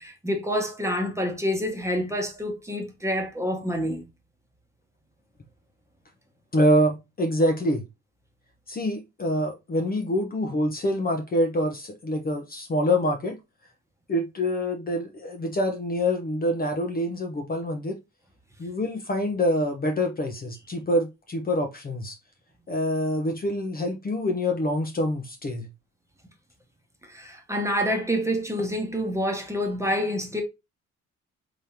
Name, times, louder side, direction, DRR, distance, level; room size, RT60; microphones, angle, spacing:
voice 1, 0.0-4.1 27.1-30.4, equal, 10° right, 1.2 m, -27 dB
voice 2, 6.5-7.8 8.7-13.4 14.1-18.0 18.6-22.2 22.7-25.7, left 1 dB, 30° left, 0.8 m, -26 dB
3.6 x 3.4 x 2.8 m
cardioid pair, 90°, 30 cm